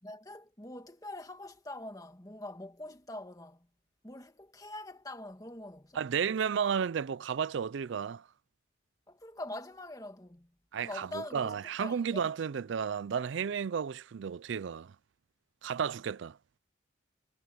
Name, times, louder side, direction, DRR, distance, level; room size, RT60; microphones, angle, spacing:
voice 1, 0.0-3.7 4.0-6.0 9.1-10.5 10.8-12.3, left 1 dB, 20° left, 1.8 m, -44 dB
voice 2, 5.9-8.3 10.7-14.9 15.6-16.4, right 7 dB, 70° right, 0.4 m, -33 dB
head